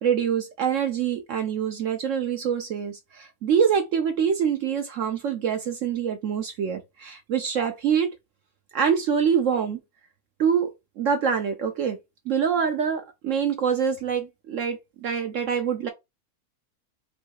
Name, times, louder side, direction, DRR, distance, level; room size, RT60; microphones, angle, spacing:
voice 1, 0.0-8.1 8.7-9.8 10.4-12.0 12.3-15.9, right 7 dB, 65° right, 0.9 m, -25 dB
3.2 x 2.7 x 4.6 m
omnidirectional pair, 1.5 m